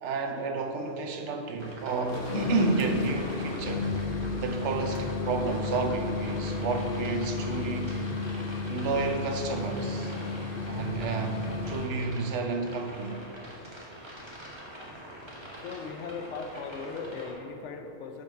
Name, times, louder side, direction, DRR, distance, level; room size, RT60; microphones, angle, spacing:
voice 1, 0.0-3.9 4.4-8.0 8.6-10.2 10.6-13.2, right 4 dB, 80° right, 5 dB, 1.0 m, -31 dB
sound 1, 1.6-17.3, equal, 25° right, 1.1 m, -45 dB
sound 2, 2.0-12.0, left 3 dB, 55° left, 0.9 m, -32 dB
voice 2, 15.6-18.2, left 5 dB, 80° left, 5 dB, 1.0 m, -38 dB
6.6 x 5.4 x 4.6 m, 2.7 s
omnidirectional pair, 1.2 m